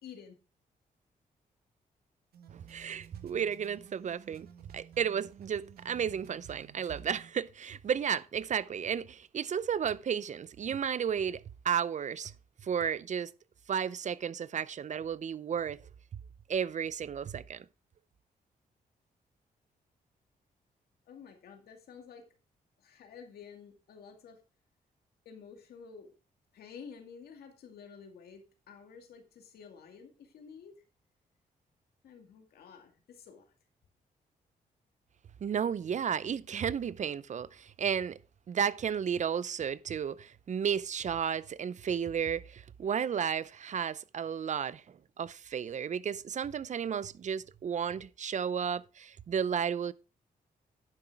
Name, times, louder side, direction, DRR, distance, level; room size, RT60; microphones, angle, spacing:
voice 1, 0.0-0.4 21.1-22.2 22.8-24.4 25.3-26.1 26.5-30.7 32.0-33.5, left 6 dB, 85° left, 2.2 m, -51 dB
sound 1, 2.3-7.3, right 8 dB, 85° right, 1.3 m, -55 dB
voice 2, 2.5-4.5 4.7-12.3 12.6-13.3 13.7-15.8 16.5-17.7 35.4-38.2 38.5-44.8 45.2-49.9, right 8 dB, 50° right, 0.5 m, -33 dB
11.0 x 5.8 x 4.6 m
cardioid pair, 75°, 16 cm